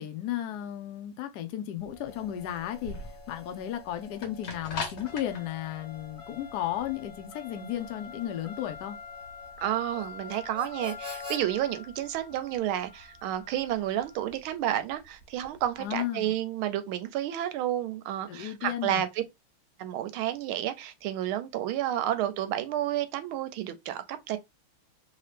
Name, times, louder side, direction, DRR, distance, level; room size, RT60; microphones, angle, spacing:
voice 1, 0.0-9.0 15.8-16.3 18.3-19.0, left 11 dB, 85° left, 0.8 m, -34 dB
sound 1, 1.8-15.9, left 4 dB, 60° left, 1.6 m, -44 dB
Harmonica, 1.9-11.4, left 5 dB, 40° right, 1.7 m, -48 dB
voice 2, 9.6-19.1 19.8-24.4, right 12 dB, 80° right, 1.4 m, -31 dB
3.4 x 2.8 x 3.3 m
omnidirectional pair, 2.4 m